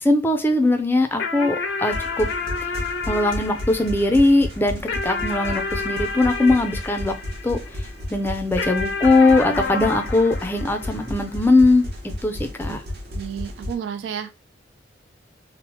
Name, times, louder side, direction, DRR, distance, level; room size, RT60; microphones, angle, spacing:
voice 1, 0.0-2.3 3.1-7.1 7.4-7.6 8.1-11.9 12.2-12.8, left 2 dB, 10° left, 0.4 m, -20 dB
sound 1, 1.2-7.9 8.6-11.4, left 4 dB, 75° left, 0.5 m, -30 dB
sound 2, 1.8-13.7, left 1 dB, 60° right, 0.8 m, -33 dB
voice 2, 13.1-14.3, right 8 dB, 75° right, 0.3 m, -31 dB
3.1 x 2.0 x 2.8 m
head